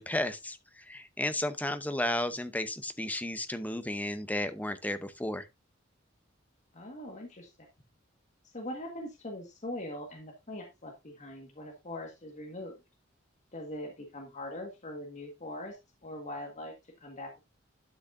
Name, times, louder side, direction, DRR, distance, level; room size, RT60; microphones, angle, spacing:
voice 1, 0.0-5.5, left 1 dB, 10° left, 0.7 m, -33 dB
voice 2, 6.7-7.5 8.5-12.7 13.5-15.8 16.0-17.4, left 1 dB, 40° left, 1.6 m, -41 dB
12.0 x 6.2 x 2.6 m
head